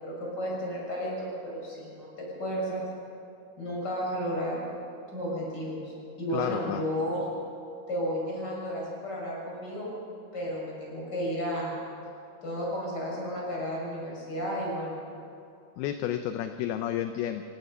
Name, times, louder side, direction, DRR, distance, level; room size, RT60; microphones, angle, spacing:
voice 1, 0.0-2.1 2.4-2.8 3.6-4.6 5.1-7.2 7.9-9.9 10.3-11.7 12.4-15.0, equal, 25° left, -4 dB, 6.9 m, -33 dB
voice 2, 6.3-6.8 15.8-17.4, left 11 dB, 80° left, 7 dB, 2.5 m, -31 dB
28.0 x 17.5 x 5.5 m, 2.7 s
omnidirectional pair, 4.9 m